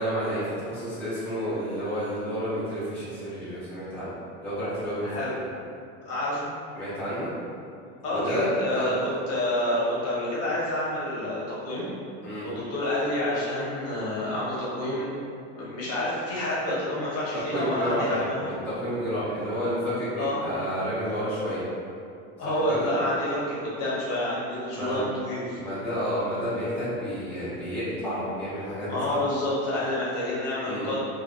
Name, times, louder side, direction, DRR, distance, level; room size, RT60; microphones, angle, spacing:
voice 1, 0.0-4.1 4.4-5.5 6.7-7.3 8.1-9.1 12.2-12.4 17.5-18.2 18.7-21.6 22.4-22.9 24.8-25.0 25.6-29.2 30.7-30.9, equal, 5° left, -12 dB, 0.5 m, -30 dB
voice 2, 6.0-6.4 8.0-11.8 12.4-15.1 15.6-18.6 20.2-20.4 22.4-25.6 28.9-31.0, left 1 dB, 40° left, -7 dB, 0.8 m, -28 dB
2.4 x 2.3 x 2.2 m, 2.5 s
supercardioid pair, 120°, 38 cm